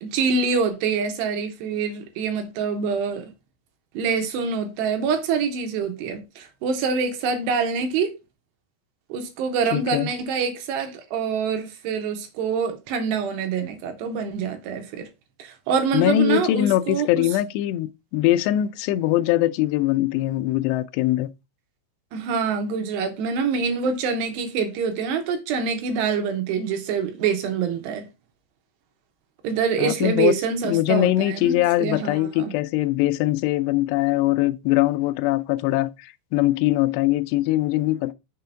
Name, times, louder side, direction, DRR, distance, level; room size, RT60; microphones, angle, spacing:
voice 1, 0.0-3.3 3.9-8.1 9.1-15.1 15.4-17.2 22.1-28.1 29.4-32.5, right 5 dB, 75° right, 3.0 m, -25 dB
voice 2, 9.7-10.1 15.9-21.3 29.8-30.3 30.6-38.1, left 15 dB, 80° left, 2.6 m, -22 dB
6.8 x 3.7 x 5.7 m
omnidirectional pair, 5.2 m